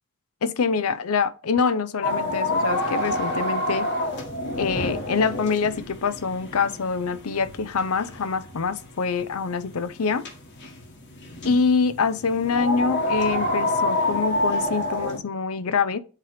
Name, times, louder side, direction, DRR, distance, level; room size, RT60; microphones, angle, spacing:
voice 1, 0.4-3.9 4.6-10.3 11.4-16.0, left 5 dB, 80° left, 0.6 m, -25 dB
Winter wind whistling through window, 2.0-15.2, left 1 dB, 55° left, 1.5 m, -28 dB
7.5 x 3.3 x 4.7 m
head